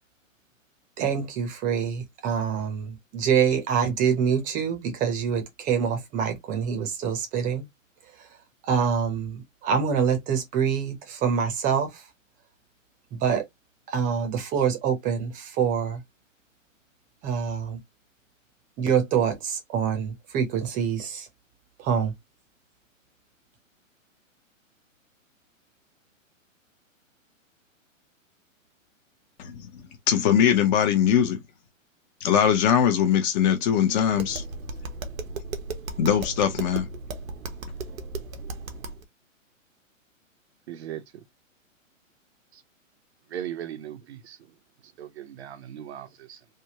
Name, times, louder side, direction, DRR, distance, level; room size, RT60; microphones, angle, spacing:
voice 1, 1.0-7.7 8.1-8.3 8.6-12.1 13.1-13.4 13.9-16.0 17.2-17.8 18.8-21.3 21.8-22.1, right 7 dB, 20° right, 0.7 m, -26 dB
voice 2, 30.1-31.4 32.2-34.4 36.0-36.9, left 9 dB, 35° left, 0.8 m, -21 dB
Tap, 34.1-39.0, right 3 dB, 85° right, 1.0 m, -36 dB
voice 3, 40.7-41.0 42.5-42.6 43.3-44.4 45.0-46.4, right 10 dB, 55° right, 0.7 m, -38 dB
3.5 x 2.2 x 2.8 m
hypercardioid pair, 130°, 40 cm